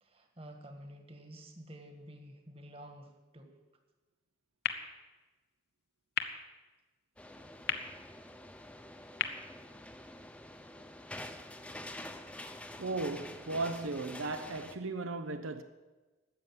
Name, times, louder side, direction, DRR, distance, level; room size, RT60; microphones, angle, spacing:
voice 1, 0.0-3.5, equal, 30° right, 1.6 m, -50 dB
sound 1, 4.6-10.6, left 8 dB, 50° left, 1.0 m, -41 dB
sound 2, 7.2-14.8, left 1 dB, 5° left, 0.6 m, -47 dB
voice 2, 12.8-15.6, right 3 dB, 85° right, 0.8 m, -36 dB
13.0 x 8.1 x 9.5 m
head